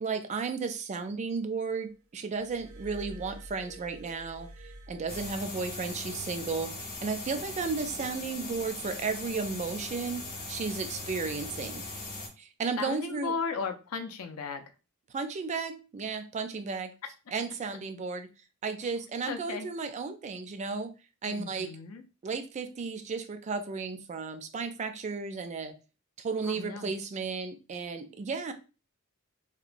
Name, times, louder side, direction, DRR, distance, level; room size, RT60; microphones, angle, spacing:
voice 1, 0.0-10.2 10.5-11.8 12.4-13.3 15.1-16.9 17.3-18.3 18.6-20.9 21.2-21.7 22.2-25.7 26.2-28.5, right 4 dB, 35° right, 8 dB, 0.3 m, -34 dB
Glass, 2.4-6.0 6.9-7.2, right 1 dB, 80° right, 0.6 m, -48 dB
sound 1, 5.1-12.3, left 2 dB, 45° left, 0.8 m, -40 dB
voice 2, 12.8-14.6 18.8-18.9 19.2-19.7 21.3-22.1 26.4-26.9, left 5 dB, 85° left, 6 dB, 0.5 m, -36 dB
2.9 x 2.1 x 2.5 m, 0.32 s
head